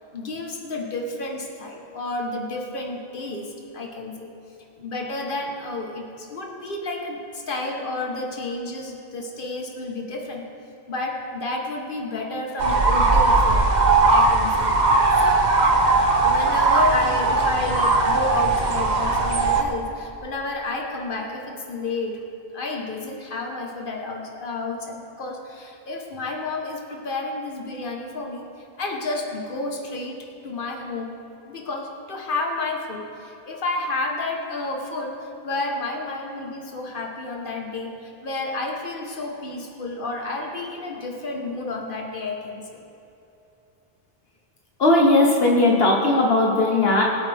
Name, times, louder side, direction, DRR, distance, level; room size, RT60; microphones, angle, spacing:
voice 1, 0.1-4.3 4.8-10.4 10.9-13.7 14.1-14.7 15.1-15.4 16.2-22.2 22.5-28.5 28.8-30.2 30.4-31.1 31.4-42.8, left 2 dB, 55° left, 1 dB, 1.6 m, -30 dB
sound 1, 12.6-19.6, right 3 dB, 45° right, 1.1 m, -19 dB
voice 2, 44.8-47.0, left 2 dB, 70° left, -1 dB, 1.5 m, -18 dB
23.0 x 8.3 x 3.6 m, 2.9 s
omnidirectional pair, 1.0 m